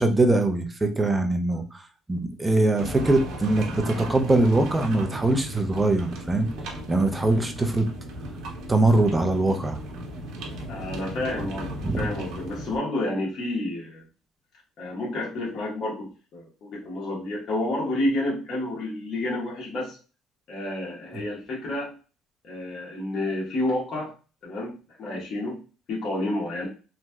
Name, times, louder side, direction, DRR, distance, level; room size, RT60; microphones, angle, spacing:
voice 1, 0.0-1.8 2.1-6.5 6.9-7.9 8.7-9.8 11.8-12.1, right 2 dB, 10° right, 5 dB, 0.4 m, -22 dB
sound 1, 2.8-12.8, right 1 dB, 65° right, 0.8 m, -36 dB
voice 2, 10.7-14.1 14.8-20.0 20.5-22.0 22.4-24.1 24.4-25.6 25.9-26.7, left 1 dB, 45° left, -4 dB, 1.1 m, -30 dB
3.0 x 2.6 x 2.2 m, 0.35 s
cardioid pair, 140°, 0 cm